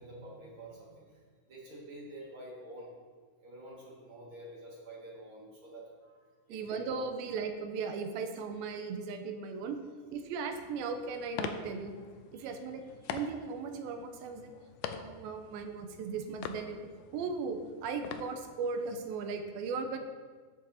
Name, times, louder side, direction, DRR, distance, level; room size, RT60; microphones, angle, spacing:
voice 1, 0.0-2.9 3.4-7.2 12.3-12.6 13.0-13.3 19.7-19.8, right 1 dB, 40° right, -5 dB, 2.2 m, -49 dB
voice 2, 6.5-9.8 10.1-11.9 12.3-12.8 13.1-14.5 14.9-20.0, right 5 dB, 85° right, 6 dB, 2.5 m, -37 dB
sound 1, 10.5-19.0, left 8 dB, 85° left, 1.8 m, -45 dB
14.5 x 6.6 x 2.8 m, 1.5 s
omnidirectional pair, 4.3 m